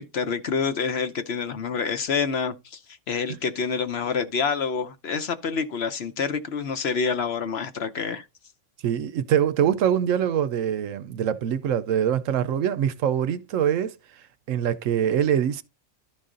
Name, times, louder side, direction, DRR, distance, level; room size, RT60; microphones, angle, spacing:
voice 1, 0.0-2.8 3.1-8.3, left 5 dB, 55° left, 0.9 m, -27 dB
voice 2, 8.8-13.9 14.5-15.6, right 9 dB, 75° right, 1.0 m, -24 dB
12.0 x 4.1 x 3.8 m
omnidirectional pair, 1.4 m